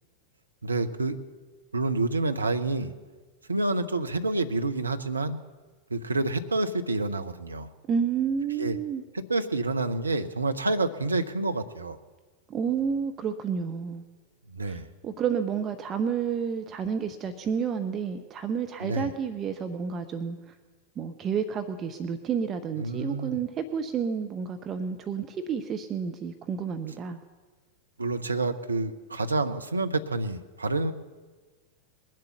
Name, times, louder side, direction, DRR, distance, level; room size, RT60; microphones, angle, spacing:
voice 1, 0.6-1.2 1.7-2.9 3.5-5.4 5.9-7.7 8.6-8.8 9.1-12.0 14.5-14.9 18.8-19.1 22.8-23.4 28.0-30.9, right 2 dB, 80° right, 8 dB, 0.7 m, -28 dB
voice 2, 7.9-9.0 12.5-14.0 14.6-20.5 21.0-27.2, right 7 dB, 30° right, 8 dB, 0.7 m, -30 dB
20.5 x 7.6 x 7.1 m, 1.4 s
figure-of-eight pair, 90°, 0 cm